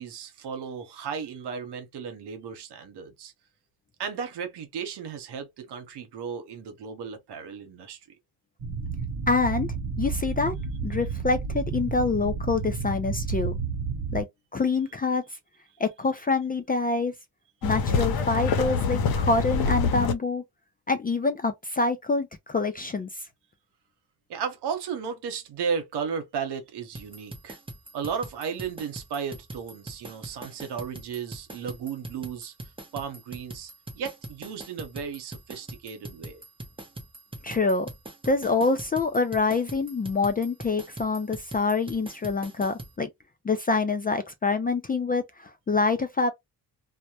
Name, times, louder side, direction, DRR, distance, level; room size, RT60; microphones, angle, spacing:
voice 1, 0.0-3.3 4.0-8.0 24.3-27.6 27.9-36.4, right 6 dB, 80° right, 0.9 m, -35 dB
sound 1, 8.6-14.2, right 5 dB, 50° right, 0.9 m, -31 dB
voice 2, 9.3-9.7 10.0-10.5 10.8-13.5 14.1-14.3 14.5-15.2 15.8-17.1 17.6-20.4 20.9-23.3 37.4-37.9 38.3-43.1 43.4-46.3, left 3 dB, 25° left, 0.4 m, -26 dB
sound 2, 17.6-20.1, left 5 dB, 60° left, 0.7 m, -25 dB
sound 3, 26.9-42.9, right 2 dB, 15° right, 0.7 m, -42 dB
2.1 x 2.1 x 2.7 m
cardioid pair, 70°, 40 cm